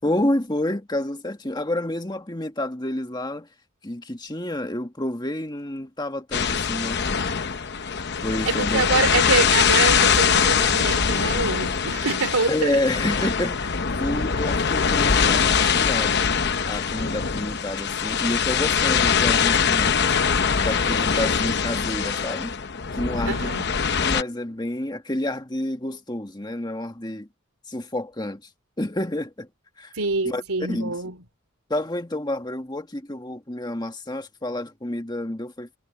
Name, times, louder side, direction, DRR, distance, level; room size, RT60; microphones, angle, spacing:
voice 1, 0.0-3.5 3.8-7.0 8.2-8.8 12.5-16.2 16.6-20.1 20.6-22.5 22.9-23.5 24.0-27.3 27.7-28.4 28.8-29.5 29.8-29.9 30.2-30.4 30.7-31.0 31.7-35.8, left 1 dB, 20° left, 1.7 m, -29 dB
sound 1, 6.3-24.2, left 6 dB, 50° left, 0.9 m, -22 dB
voice 2, 8.5-12.8 23.3-23.7 29.9-31.2, right 3 dB, 90° right, 3.5 m, -25 dB
head